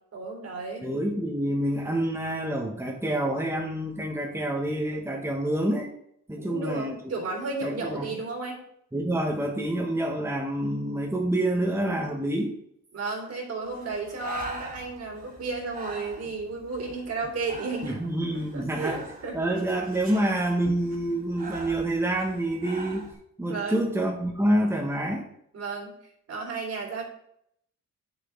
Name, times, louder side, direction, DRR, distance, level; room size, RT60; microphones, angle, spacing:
voice 1, 0.1-0.9 6.4-8.6 12.9-18.0 18.5-19.4 23.5-23.8 25.5-25.9 26.3-27.0, right 3 dB, 55° right, 0 dB, 3.6 m, -33 dB
voice 2, 0.8-5.9 6.3-7.0 7.6-8.1 8.9-12.5 17.8-19.0 19.3-23.1 23.4-25.3, right 1 dB, 10° right, -1 dB, 1.6 m, -27 dB
Breathing, 13.6-23.1, right 2 dB, 30° right, 2.5 m, -42 dB
8.3 x 7.1 x 4.0 m, 0.70 s
cardioid pair, 90°, 30 cm